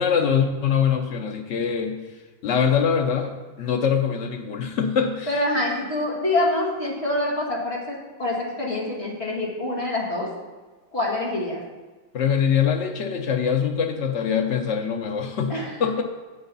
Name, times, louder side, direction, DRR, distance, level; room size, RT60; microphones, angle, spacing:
voice 1, 0.0-2.0 2.4-5.3 12.1-15.5 15.8-16.0, left 7 dB, 75° left, 3 dB, 0.6 m, -23 dB
voice 2, 5.3-10.3 10.9-11.6 15.5-15.7, left 1 dB, 30° left, -3 dB, 2.1 m, -26 dB
9.0 x 8.1 x 4.0 m, 1.2 s
omnidirectional pair, 2.2 m